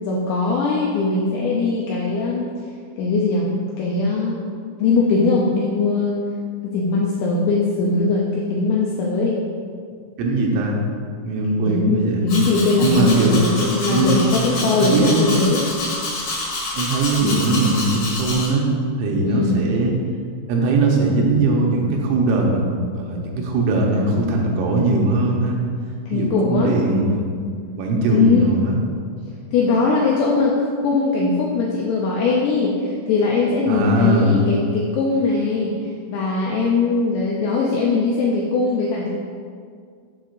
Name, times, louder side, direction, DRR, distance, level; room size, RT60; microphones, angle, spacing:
voice 1, 0.0-2.5 3.0-3.5 3.8-4.5 4.8-6.2 6.6-9.4 11.7-15.7 17.2-17.4 19.2-19.6 26.1-26.8 28.1-28.5 29.5-35.7 36.1-39.1, left 3 dB, 85° left, -3 dB, 2.5 m, -20 dB
voice 2, 10.2-10.8 11.2-12.2 12.8-13.4 13.9-14.2 14.6-15.2 16.8-18.7 19.0-19.9 20.5-22.6 23.0-25.6 26.1-27.2 27.8-28.8 33.7-34.5, right 2 dB, 80° right, -1 dB, 3.4 m, -20 dB
Domestic sounds home sounds, 12.3-18.5, left 2 dB, 65° left, 1.6 m, -27 dB
8.4 x 3.6 x 6.5 m, 2.1 s
omnidirectional pair, 5.8 m